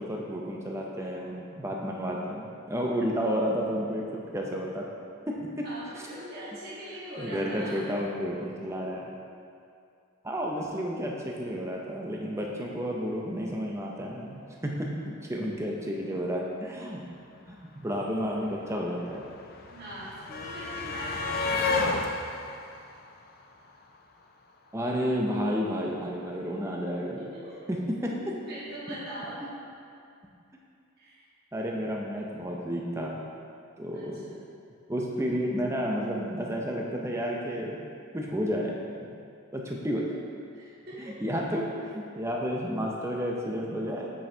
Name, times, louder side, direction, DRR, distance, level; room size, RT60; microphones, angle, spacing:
voice 1, 0.0-4.9 5.3-5.5 7.2-9.1 10.2-17.0 17.5-19.2 24.7-27.2 27.7-28.1 31.5-33.2 33.8-34.3 34.9-37.8 38.1-38.7 39.0-39.1 39.5-40.2 41.0-44.1, equal, 10° right, -1 dB, 0.5 m, -31 dB
voice 2, 5.6-7.9 19.7-21.9 27.2-27.7 28.1-28.2 28.5-29.5 31.0-31.2 33.9-34.4 40.5-41.2, right 1 dB, 45° right, -10 dB, 1.6 m, -41 dB
sound 1, 17.5-17.6 17.8-24.0 25.2-25.3 25.6-25.7, left 3 dB, 45° left, 0.4 m, -33 dB
8.4 x 5.3 x 2.8 m, 2.4 s
head